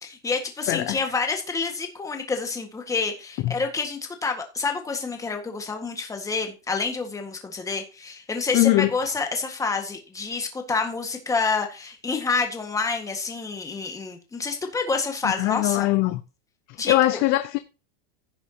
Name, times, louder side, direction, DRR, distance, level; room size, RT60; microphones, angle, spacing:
voice 1, 0.0-15.9 16.8-17.2, left 4 dB, 10° left, 1.7 m, -28 dB
voice 2, 0.7-1.0 3.4-3.5 8.5-8.9 15.2-16.2 16.9-17.6, left 17 dB, 30° left, 0.5 m, -21 dB
15.5 x 6.8 x 2.9 m
supercardioid pair, 165°, 35 cm